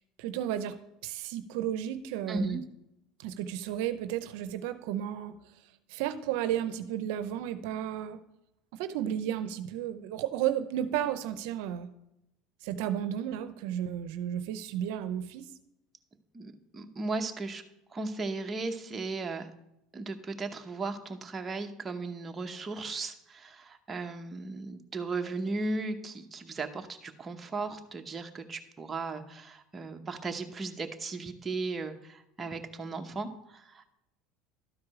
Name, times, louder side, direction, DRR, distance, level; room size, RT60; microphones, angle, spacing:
voice 1, 0.2-0.8 1.0-2.6 3.2-5.4 5.9-8.2 8.7-11.9 12.6-15.5, right 10 dB, 75° right, 12 dB, 0.6 m, -33 dB
voice 2, 2.3-2.6 16.3-17.6 17.9-19.5 19.9-33.9, right 3 dB, 20° right, 4 dB, 0.8 m, -36 dB
12.5 x 4.8 x 4.8 m, 0.86 s
supercardioid pair, 130°, 0 cm